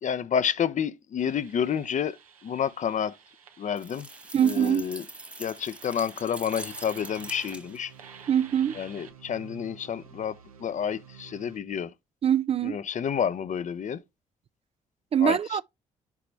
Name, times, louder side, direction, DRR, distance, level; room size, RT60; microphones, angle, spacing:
voice 1, 0.0-2.2 2.4-3.1 3.6-4.1 4.4-5.0 5.4-7.9 8.8-11.9 12.6-14.0 15.2-15.4, left 8 dB, 45° left, 0.6 m, -29 dB
sound 1, 1.2-11.6, right 8 dB, 90° right, 0.7 m, -50 dB
sound 2, 3.8-7.9, right 1 dB, 5° right, 0.9 m, -44 dB
voice 2, 4.3-4.9 8.3-8.8 12.2-12.8 15.1-15.6, right 9 dB, 35° right, 0.4 m, -23 dB
8.4 x 4.9 x 3.2 m
hypercardioid pair, 45°, 18 cm